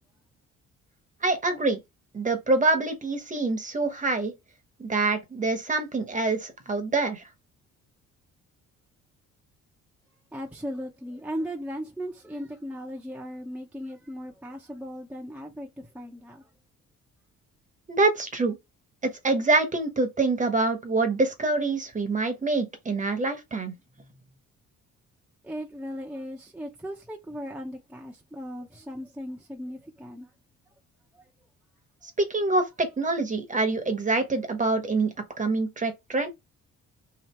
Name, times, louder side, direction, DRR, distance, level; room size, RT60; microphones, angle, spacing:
voice 1, 1.2-1.8 2.1-4.3 4.8-7.2 17.9-18.6 19.0-23.7 32.2-36.3, right 3 dB, 25° right, 1.0 m, -25 dB
voice 2, 10.3-16.5 25.4-30.3 31.1-31.3, equal, 5° right, 0.7 m, -37 dB
3.0 x 2.8 x 4.3 m
cardioid pair, 90°, 30 cm